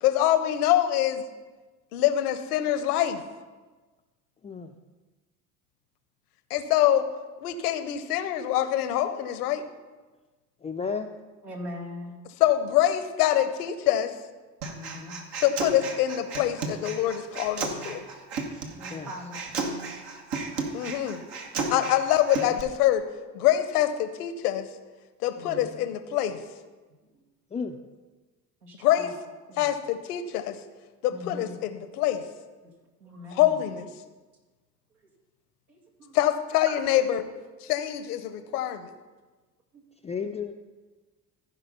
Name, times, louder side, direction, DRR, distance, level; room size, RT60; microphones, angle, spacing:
voice 1, 0.0-1.2 1.9-3.2 6.5-7.1 7.4-9.6 12.4-14.1 15.4-18.0 20.7-21.2 21.7-23.0 23.3-24.7 25.2-26.4 28.8-29.1 29.6-30.6 31.0-32.2 33.3-33.9 36.1-37.2 37.6-38.9, left 12 dB, 70° left, 11 dB, 0.9 m, -25 dB
voice 2, 10.6-11.1 18.9-19.1 27.5-27.8 40.0-40.5, left 5 dB, 15° left, 3 dB, 0.4 m, -32 dB
voice 3, 11.4-12.1 14.6-15.2 18.7-19.4 25.4-25.7 28.6-29.1 29.5-29.7 31.1-31.6 33.0-33.5 35.7-36.2, left 1 dB, 80° right, -1 dB, 2.1 m, -41 dB
Human voice, 14.6-22.6, right 3 dB, 65° right, 1.4 m, -34 dB
15.0 x 5.2 x 5.5 m, 1.3 s
figure-of-eight pair, 60°, 47 cm